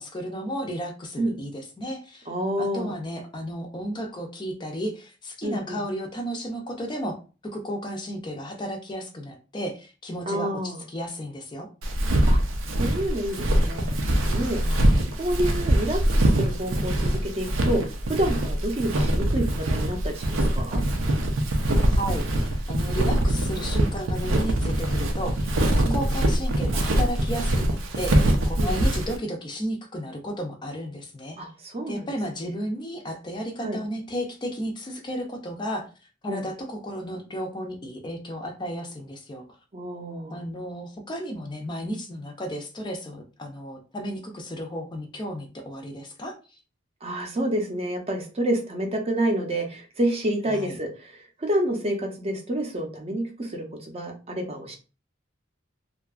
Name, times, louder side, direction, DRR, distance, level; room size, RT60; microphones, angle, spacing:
voice 1, 0.0-2.3 2.6-7.2 7.4-11.7 14.6-15.1 21.9-31.4 31.9-35.9 36.2-39.4 40.3-46.4 50.5-50.8, equal, 25° left, 3 dB, 0.4 m, -33 dB
voice 2, 2.3-2.9 5.4-5.8 10.3-10.8 12.3-12.4 12.7-14.7 15.2-17.8 18.1-20.8 25.8-26.0 28.6-28.7 31.4-32.1 32.4-32.6 33.6-33.8 36.3-36.4 39.7-40.4 47.0-54.8, right 1 dB, 30° right, 2 dB, 0.6 m, -29 dB
Walk footsteps, 11.8-29.2, right 1 dB, 90° right, 0.5 m, -23 dB
2.7 x 2.3 x 2.3 m, 0.33 s
head